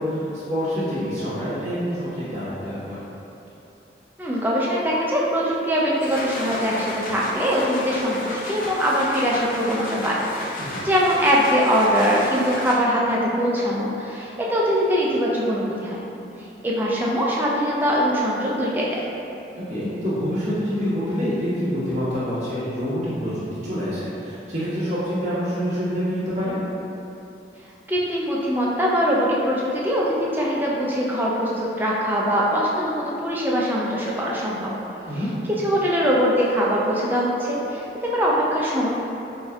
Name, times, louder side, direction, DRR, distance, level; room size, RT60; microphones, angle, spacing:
voice 1, 0.0-3.0 10.6-10.8 19.7-26.6 35.1-35.3, equal, 40° right, -13 dB, 1.4 m, -26 dB
voice 2, 4.2-16.0 16.6-19.1 27.9-34.7 35.6-38.9, equal, 10° right, -5 dB, 0.4 m, -22 dB
sound 1, 5.8-13.1, left 1 dB, 50° left, 0.4 m, -33 dB
5.3 x 2.6 x 2.3 m, 2.9 s
head